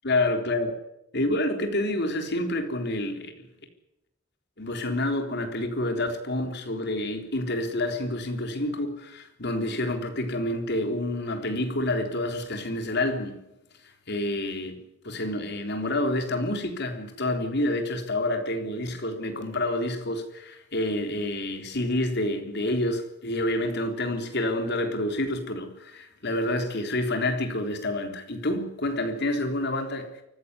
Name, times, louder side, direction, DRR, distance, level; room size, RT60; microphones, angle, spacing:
voice 1, 0.0-0.8 1.1-3.5 4.6-13.4 13.8-30.1, left 1 dB, 60° left, 3.7 m, -28 dB
24.5 x 15.5 x 9.7 m
head